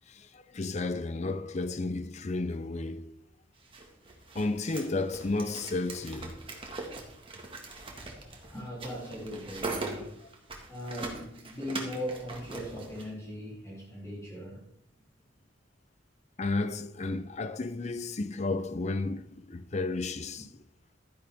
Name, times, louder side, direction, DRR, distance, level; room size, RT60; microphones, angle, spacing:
voice 1, 0.1-3.1 4.3-6.4 16.4-20.5, left 2 dB, 35° left, 0.6 m, -32 dB
sound 1, 3.6-13.1, right 2 dB, 30° right, 1.8 m, -41 dB
voice 2, 8.5-10.1 10.7-14.6, equal, 15° left, 3.1 m, -39 dB
12.5 x 10.0 x 3.6 m
head